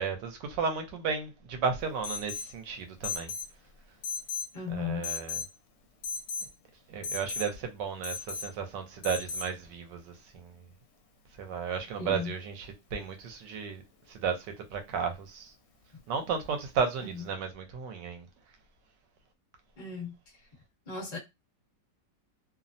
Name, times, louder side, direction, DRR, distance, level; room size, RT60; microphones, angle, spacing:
voice 1, 0.0-3.3 4.7-5.4 6.9-10.6 11.4-13.8 14.1-15.5 16.1-18.3, right 6 dB, 85° right, 1.3 m, -34 dB
Alarm, 2.0-2.5 3.0-3.5 4.0-4.5 5.0-5.5 6.0-6.5 7.0-7.5 8.0-8.5 9.0-9.5, left 4 dB, 80° left, 1.2 m, -35 dB
voice 2, 4.5-5.1 12.0-12.3 17.0-17.2 19.8-20.1 20.9-21.2, left 6 dB, 30° left, 0.9 m, -36 dB
3.0 x 2.0 x 2.5 m
omnidirectional pair, 1.9 m